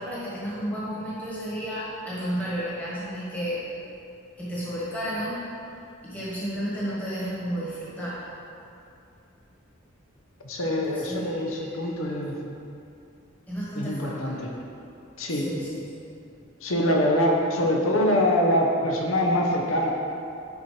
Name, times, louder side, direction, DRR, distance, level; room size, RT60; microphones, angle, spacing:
voice 1, 0.0-3.6 4.4-5.4 6.0-8.2 11.1-11.6 13.5-14.5 15.3-15.8, equal, 10° left, -9 dB, 1.4 m, -32 dB
voice 2, 10.4-12.4 13.7-14.5 15.2-15.5 16.6-19.9, left 1 dB, 85° left, 0 dB, 0.9 m, -24 dB
10.0 x 4.4 x 3.3 m, 2.6 s
head